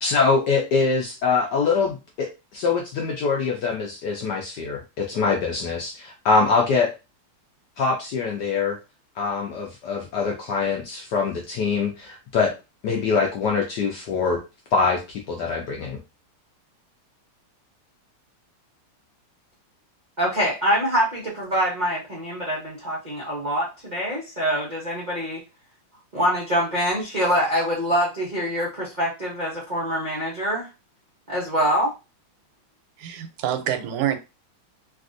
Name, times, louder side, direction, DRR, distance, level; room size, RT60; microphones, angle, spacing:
voice 1, 0.0-6.9 7.8-8.8 9.2-12.5 12.8-14.4 14.7-16.0, left 4 dB, 70° left, 1.0 m, -24 dB
voice 2, 20.2-25.4 26.1-30.7 31.3-31.9, equal, 70° right, 0.4 m, -24 dB
voice 3, 33.0-34.2, right 10 dB, 85° right, 1.5 m, -26 dB
3.3 x 2.5 x 2.5 m
omnidirectional pair, 2.3 m